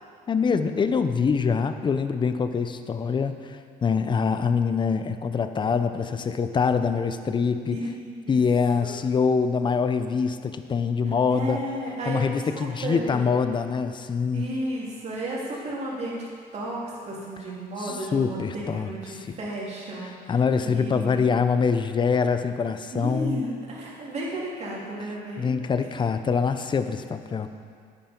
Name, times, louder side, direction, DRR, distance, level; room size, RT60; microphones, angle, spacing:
voice 1, 0.3-7.8 8.3-11.6 12.1-14.4 17.8-19.4 20.0-23.4 25.4-27.5, left 5 dB, 30° left, 9 dB, 0.6 m, -24 dB
voice 2, 11.3-12.2 12.8-13.2 14.3-16.3 16.5-20.3 20.6-21.3 22.9-25.9, right 1 dB, 40° right, -5 dB, 3.0 m, -33 dB
10.5 x 9.3 x 4.5 m, 2.2 s
cardioid pair, 110°, 17 cm